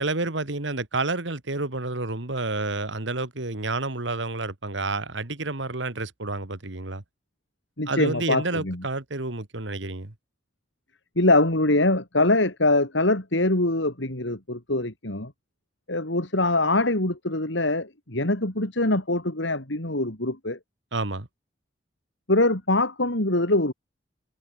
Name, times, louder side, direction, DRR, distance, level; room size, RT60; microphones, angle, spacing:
voice 1, 0.0-7.0 7.9-10.1 20.9-21.3, right 3 dB, 75° right, 2.0 m, -29 dB
voice 2, 7.8-8.8 11.2-15.3 15.9-20.6 22.3-23.7, left 2 dB, 75° left, 3.5 m, -23 dB
head